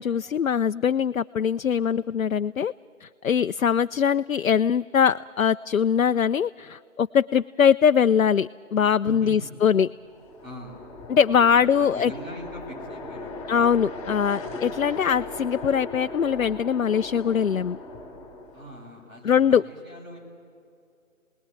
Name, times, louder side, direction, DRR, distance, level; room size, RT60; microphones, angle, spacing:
voice 1, 0.0-2.7 3.0-9.9 11.1-12.1 13.5-17.8 19.2-19.6, left 7 dB, 80° left, 10 dB, 0.5 m, -22 dB
voice 2, 9.0-9.4 10.4-10.8 11.5-13.3 18.5-20.2, equal, 85° right, -2 dB, 7.7 m, -41 dB
sound 1, 9.9-19.0, left 2 dB, 10° left, 3.0 m, -38 dB
28.5 x 20.0 x 8.9 m, 2.6 s
figure-of-eight pair, 150°, 40 cm